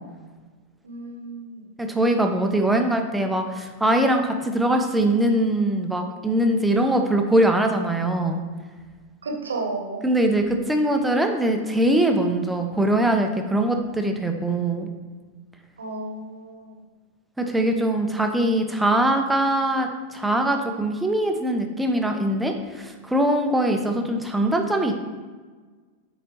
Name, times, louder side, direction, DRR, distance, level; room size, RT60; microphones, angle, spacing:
voice 1, 0.8-1.7 9.2-10.0 15.8-16.8, right 3 dB, 70° right, 1 dB, 1.1 m, -32 dB
voice 2, 1.8-8.4 10.0-14.9 17.4-25.0, right 1 dB, 5° right, 4 dB, 0.7 m, -22 dB
8.6 x 4.0 x 3.1 m, 1.4 s
figure-of-eight pair, 90°, 0 cm